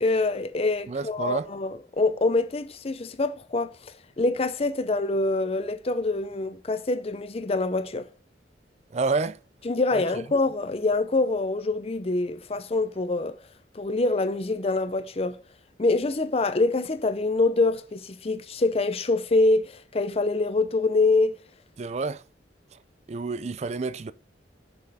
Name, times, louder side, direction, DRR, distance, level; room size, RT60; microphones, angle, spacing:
voice 1, 0.0-8.1 9.6-13.4 13.7-15.4 15.8-21.3, left 3 dB, 35° left, 0.5 m, -25 dB
voice 2, 0.9-1.5 8.9-9.4 9.9-10.0 21.8-22.2 23.1-24.1, right 4 dB, 40° right, 0.4 m, -29 dB
6.2 x 5.3 x 4.1 m
head